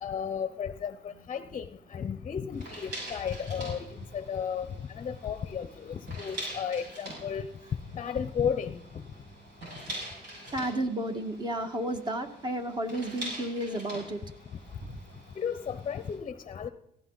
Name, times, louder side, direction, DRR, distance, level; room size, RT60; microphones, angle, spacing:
voice 1, 0.0-1.6 1.9-4.7 4.9-7.5 7.9-8.8 15.4-16.7, left 7 dB, 35° left, 12 dB, 0.8 m, -33 dB
sound 1, 2.5-16.2, right 1 dB, 85° right, 7.0 m, -44 dB
voice 2, 10.5-14.2 14.9-15.0, right 1 dB, 25° right, 6 dB, 1.8 m, -32 dB
17.0 x 16.0 x 4.0 m, 0.78 s
cardioid pair, 110°, 17 cm